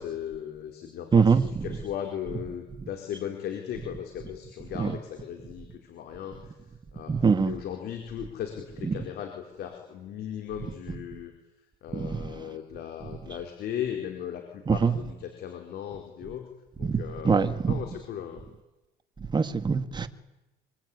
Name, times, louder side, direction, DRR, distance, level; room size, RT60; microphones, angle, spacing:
voice 1, 0.0-6.4 6.9-7.1 7.4-11.3 11.8-16.5 16.8-18.4, left 9 dB, 70° left, 4.4 m, -37 dB
voice 2, 1.1-1.7 4.7-5.0 7.1-7.6 8.8-9.0 11.9-12.3 14.7-15.0 16.8-17.8 19.3-20.1, right 5 dB, 25° right, 2.0 m, -24 dB
25.0 x 24.0 x 9.8 m
cardioid pair, 110°, 17 cm